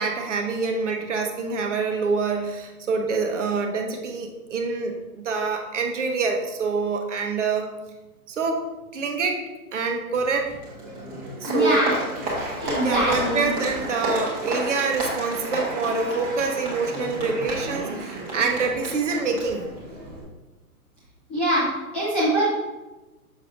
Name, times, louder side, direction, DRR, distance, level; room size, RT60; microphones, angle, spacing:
voice 1, 0.0-7.7 8.3-8.6 8.9-9.4 9.7-10.5 11.4-11.8 12.8-19.6, right 4 dB, 50° right, 3 dB, 1.0 m, -26 dB
Applause, 10.1-20.2, right 1 dB, 15° right, 1.0 m, -32 dB
voice 2, 11.5-11.9 12.6-13.5 21.3-21.7 21.9-22.5, right 1 dB, 10° left, -11 dB, 0.6 m, -23 dB
6.4 x 6.1 x 2.6 m, 1.1 s
hypercardioid pair, 170°, 46 cm